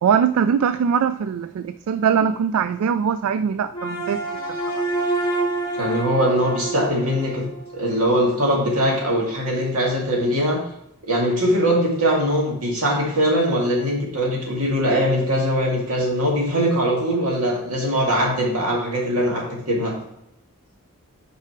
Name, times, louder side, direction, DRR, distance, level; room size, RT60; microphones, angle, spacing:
voice 1, 0.0-4.2 4.5-4.6, right 7 dB, 70° right, 12 dB, 0.3 m, -21 dB
sound 1, 3.7-8.0, right 2 dB, 20° left, 1.5 m, -27 dB
voice 2, 5.8-7.5 7.7-10.6 11.0-19.9, equal, 85° right, -1 dB, 2.0 m, -21 dB
5.8 x 4.8 x 4.5 m, 0.83 s
head